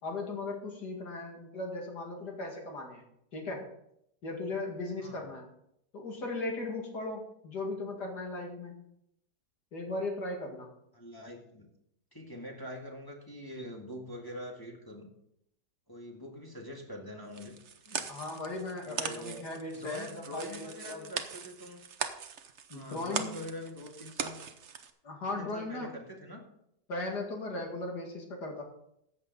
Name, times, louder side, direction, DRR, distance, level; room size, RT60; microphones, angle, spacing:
voice 1, 0.0-3.0 3.3-3.7 4.2-5.5 5.9-8.8 9.7-10.7 18.1-21.1 22.7-23.3 25.0-25.9 26.9-28.6, left 2 dB, 65° left, 1 dB, 2.8 m, -37 dB
voice 2, 5.0-5.3 10.9-11.7 12.1-15.1 15.9-17.6 17.9-18.1 18.8-21.8 22.7-24.4 25.2-26.4, equal, 15° left, 0 dB, 1.6 m, -44 dB
sound 1, 17.3-24.9, right 6 dB, 50° right, 1.0 m, -40 dB
14.0 x 8.9 x 4.1 m, 0.77 s
omnidirectional pair, 1.9 m